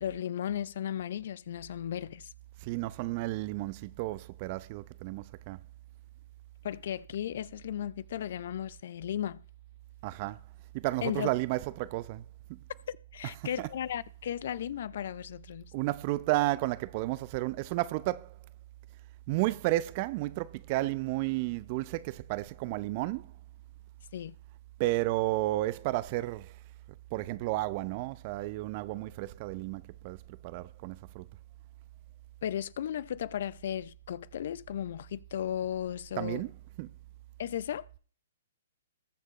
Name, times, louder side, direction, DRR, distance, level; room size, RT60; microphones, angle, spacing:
voice 1, 0.0-2.3 6.6-9.4 11.0-11.3 12.9-15.7 24.1-24.4 32.4-36.5 37.4-37.9, left 10 dB, 55° left, 0.5 m, -35 dB
voice 2, 2.6-5.6 10.0-10.4 10.7-12.2 12.5-12.6 15.7-18.3 19.3-23.3 24.8-26.5 27.1-30.2 30.4-31.3 36.2-36.5 36.8-36.9, right 18 dB, 40° right, 0.7 m, -32 dB
20.5 x 7.4 x 3.1 m
figure-of-eight pair, 120°, 0 cm